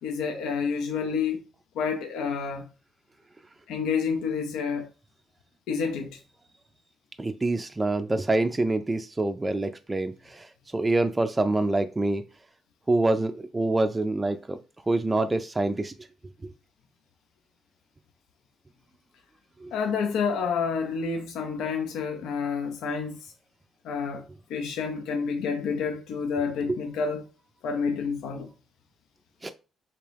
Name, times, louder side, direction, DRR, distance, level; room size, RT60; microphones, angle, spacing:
voice 1, 0.0-1.4 1.7-2.7 3.7-4.9 5.7-6.2 19.7-23.2 23.8-24.2 24.5-27.2 27.6-28.5, left 5 dB, 90° left, 0.6 m, -29 dB
voice 2, 7.2-12.2 12.9-14.6 14.8-15.9 16.4-16.5 19.6-19.7 26.7-26.8 29.4-29.5, right 2 dB, 20° right, 0.4 m, -26 dB
3.5 x 2.8 x 3.3 m
cardioid pair, 90°, 0 cm